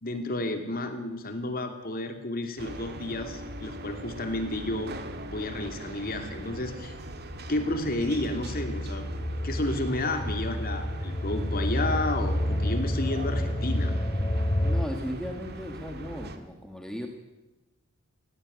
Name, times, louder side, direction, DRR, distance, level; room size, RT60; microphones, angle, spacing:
voice 1, 0.0-4.9 5.3-6.9 7.5-9.1 9.4-13.9, left 2 dB, 45° left, 6 dB, 2.8 m, -31 dB
sound 1, 2.6-16.4, right 1 dB, 55° right, 1.9 m, -40 dB
sound 2, 7.3-14.9, left 1 dB, 25° left, 1.1 m, -29 dB
voice 2, 14.6-17.1, equal, 5° left, 3 dB, 1.7 m, -36 dB
18.0 x 17.0 x 9.6 m, 1.0 s
head